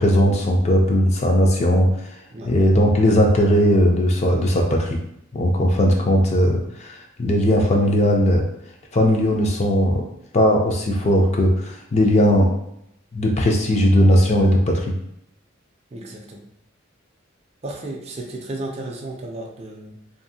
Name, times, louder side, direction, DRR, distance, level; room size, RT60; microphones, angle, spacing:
voice 1, 0.0-1.9 2.5-5.0 5.3-6.9 7.2-8.4 8.9-10.0 10.3-12.5 13.1-14.8, equal, 35° left, 0 dB, 0.4 m, -18 dB
voice 2, 15.9-16.4 17.6-20.0, right 2 dB, 30° right, 0 dB, 0.4 m, -33 dB
2.6 x 2.4 x 2.7 m, 0.77 s
head